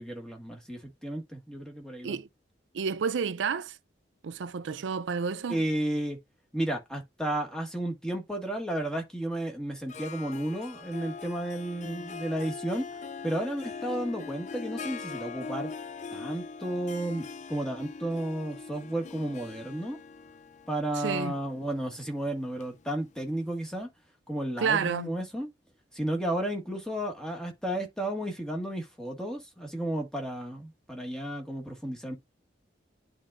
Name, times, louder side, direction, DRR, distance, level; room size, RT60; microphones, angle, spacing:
voice 1, 0.0-2.2 5.5-6.2 6.5-12.9 13.2-15.7 16.1-20.0 20.7-23.9 24.3-25.5 25.9-32.1, right 1 dB, 5° left, 1.7 m, -33 dB
voice 2, 2.7-3.8 4.2-5.6 21.0-21.3 24.6-25.1, right 6 dB, 90° right, 0.4 m, -30 dB
Harp, 9.9-23.4, left 4 dB, 40° left, 0.4 m, -42 dB
10.5 x 3.7 x 2.5 m
head